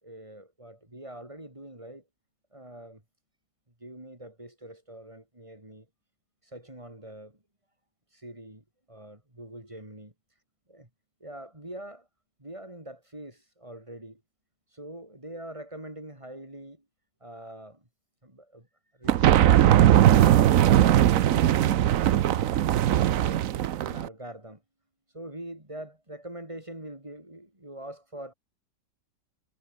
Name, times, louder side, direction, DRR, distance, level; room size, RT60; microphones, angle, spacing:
voice 1, 0.0-2.0 2.5-3.0 3.8-5.9 6.4-7.4 8.1-10.1 10.7-10.9 11.2-12.1 12.4-14.2 14.7-16.9 17.2-17.9 18.2-18.7 22.1-22.7 23.2-23.4 23.8-24.6 25.1-28.3, right 1 dB, 15° right, 5.1 m, -44 dB
sound 1, 19.1-24.1, right 11 dB, 60° right, 1.0 m, -20 dB
omnidirectional pair, 1.8 m